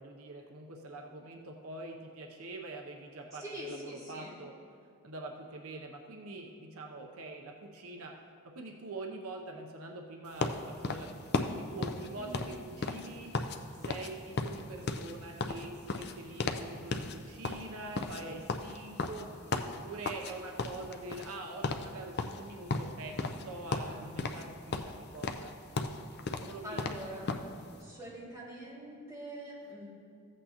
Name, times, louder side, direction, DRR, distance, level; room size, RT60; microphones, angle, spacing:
voice 1, 0.0-4.5 5.0-8.1 8.4-13.3 13.8-19.3 19.6-25.5 26.4-27.0, right 2 dB, 75° right, 2 dB, 0.7 m, -44 dB
voice 2, 3.4-4.3 12.2-12.5 26.6-27.2 27.8-29.9, equal, 15° right, -8 dB, 2.3 m, -44 dB
sound 1, 10.4-13.6 13.8-14.1 14.4-16.7 16.9-17.2 17.4-20.3 20.6-21.4 21.6-21.9 22.2-23.5 23.7-24.5 24.7-27.5, left 3 dB, 45° left, 0.5 m, -35 dB
14.5 x 8.1 x 2.9 m, 2.4 s
head